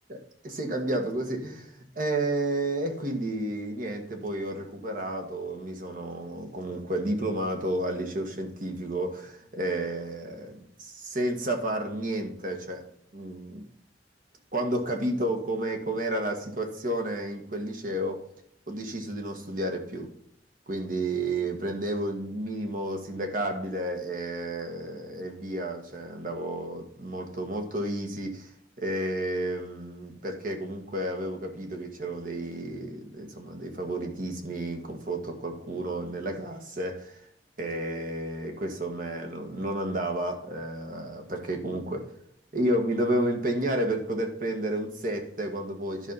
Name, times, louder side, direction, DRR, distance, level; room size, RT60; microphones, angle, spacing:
voice 1, 0.4-12.8 13.1-13.7 14.5-18.2 18.7-20.1 20.7-28.5 28.8-37.2 37.6-42.0 42.5-46.1, right 1 dB, 50° right, 4 dB, 1.7 m, -31 dB
11.0 x 5.4 x 5.7 m, 0.69 s
head